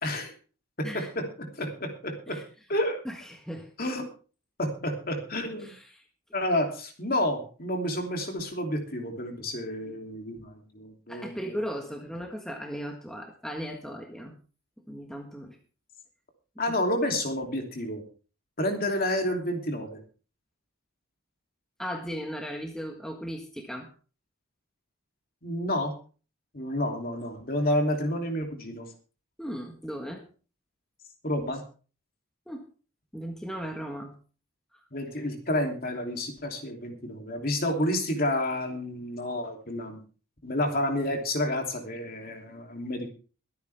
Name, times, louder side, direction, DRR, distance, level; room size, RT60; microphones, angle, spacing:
voice 1, 0.0-0.3 0.8-2.4 2.7-3.0 3.8-4.1 4.6-5.7 6.3-11.5 16.6-18.0 18.6-20.0 25.4-25.9 26.5-28.9 31.2-31.6 34.9-40.0 40.4-43.1, left 1 dB, 40° left, 3 dB, 2.9 m, -30 dB
voice 2, 3.0-3.7 5.6-6.0 11.1-14.3 14.9-15.6 16.7-16.8 21.8-23.9 29.4-30.2 32.5-32.6 33.1-34.1, equal, 5° left, 2 dB, 1.5 m, -37 dB
23.0 x 9.5 x 3.5 m, 0.38 s
head